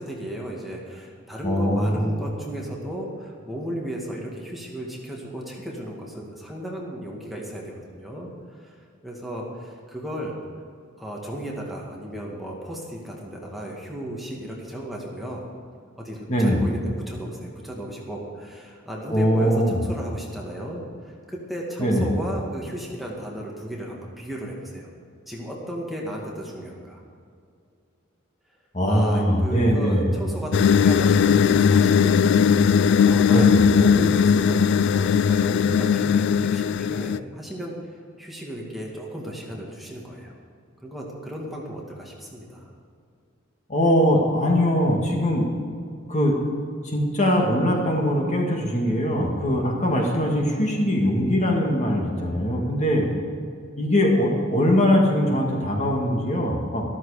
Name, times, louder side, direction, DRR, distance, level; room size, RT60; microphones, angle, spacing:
voice 1, 0.0-10.4 11.0-15.5 16.0-24.9 25.3-27.0 28.9-32.8 33.0-40.4 40.8-42.7, equal, ahead, -3 dB, 2.1 m, -35 dB
voice 2, 1.4-2.1 16.3-16.6 19.1-19.8 21.8-22.1 28.7-30.0 33.3-33.6 43.7-45.5 46.1-46.3 46.8-53.1 53.8-56.8, equal, 35° left, 0 dB, 2.0 m, -21 dB
sound 1, 30.5-37.2, left 6 dB, 60° left, 0.3 m, -18 dB
13.5 x 13.5 x 5.0 m, 2.3 s
head